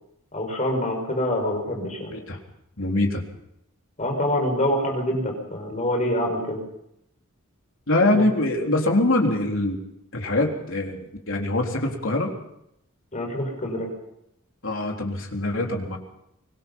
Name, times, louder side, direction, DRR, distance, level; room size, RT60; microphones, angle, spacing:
voice 1, 0.3-2.1 4.0-6.6 8.1-8.3 13.1-13.9, left 1 dB, 35° left, 2 dB, 5.8 m, -26 dB
voice 2, 2.8-3.2 7.9-9.8 10.1-12.3 14.6-16.0, left 2 dB, 65° left, 1 dB, 3.8 m, -23 dB
24.5 x 20.5 x 5.6 m, 0.79 s
head